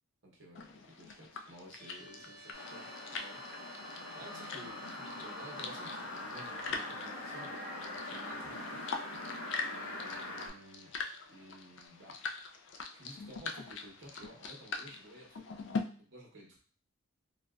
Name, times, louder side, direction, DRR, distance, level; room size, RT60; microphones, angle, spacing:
voice 1, 0.2-3.4 4.2-9.0 9.7-10.9 11.3-12.2 12.9-15.5 16.0-16.6, right 1 dB, 60° right, -1 dB, 0.8 m, -53 dB
Ruidos Boca, 0.5-15.8, left 4 dB, 55° left, 0.3 m, -43 dB
sound 1, 1.8-11.9, right 2 dB, ahead, 0.5 m, -57 dB
sound 2, 2.5-10.5, left 2 dB, 85° left, 0.8 m, -43 dB
3.9 x 2.1 x 2.3 m, 0.43 s
head